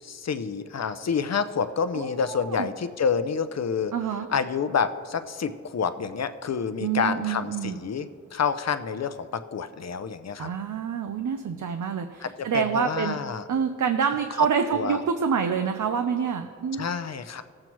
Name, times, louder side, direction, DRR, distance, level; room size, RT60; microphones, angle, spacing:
voice 1, 0.0-3.9 4.3-10.5 12.2-13.4 14.4-15.0 16.7-17.4, left 6 dB, 60° left, 11 dB, 0.6 m, -28 dB
voice 2, 1.9-2.7 3.9-4.3 6.8-7.8 10.4-13.2 13.5-16.9, right 7 dB, 85° right, 6 dB, 0.6 m, -27 dB
17.5 x 7.5 x 3.0 m, 2.3 s
wide cardioid pair, 85°, 30 cm